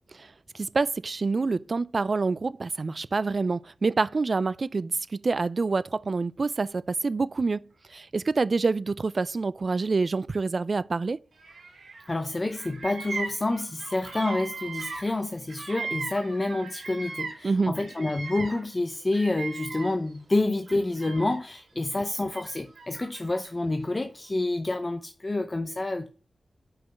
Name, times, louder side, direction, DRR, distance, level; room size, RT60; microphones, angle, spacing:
voice 1, 0.5-11.2 17.4-17.7, right 4 dB, 50° right, 0.3 m, -27 dB
Bird vocalization bird call bird song, 11.4-12.1 12.4-17.5 17.7-20.2 20.6-21.6 22.3-23.4, right 4 dB, 75° right, 2.9 m, -38 dB
voice 2, 12.1-26.1, left 2 dB, 30° left, 0.6 m, -28 dB
5.7 x 5.2 x 6.0 m
wide cardioid pair, 95°, 0 cm